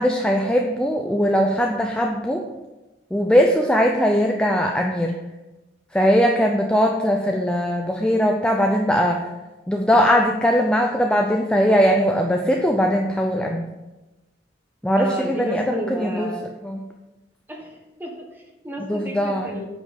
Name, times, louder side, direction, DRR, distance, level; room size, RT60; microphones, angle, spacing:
voice 1, 0.0-2.5 3.1-5.1 5.9-9.2 9.7-13.7 14.8-16.3 16.6-16.8 18.9-19.6, equal, 5° left, 1 dB, 0.5 m, -20 dB
voice 2, 15.0-16.4 17.5-19.7, right 1 dB, 10° right, 0 dB, 1.5 m, -31 dB
9.1 x 5.2 x 5.2 m, 1.1 s
head